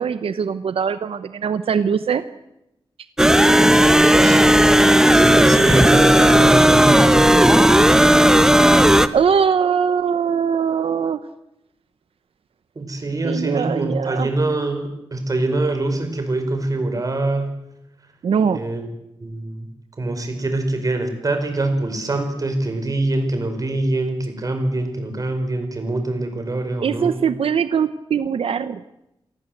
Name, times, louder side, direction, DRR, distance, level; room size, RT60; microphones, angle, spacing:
voice 1, 0.0-2.2 9.1-11.2 13.2-14.3 18.2-18.6 26.8-28.8, right 7 dB, 90° right, 12 dB, 0.9 m, -21 dB
sound 1, 3.2-9.1, right 1 dB, 5° right, 1.1 m, -13 dB
voice 2, 4.0-4.4 4.9-8.0 12.8-17.5 18.5-18.9 19.2-19.7 20.0-27.3, right 2 dB, 40° right, 6 dB, 5.1 m, -24 dB
27.0 x 19.5 x 7.9 m, 0.88 s
wide cardioid pair, 120°, 9 cm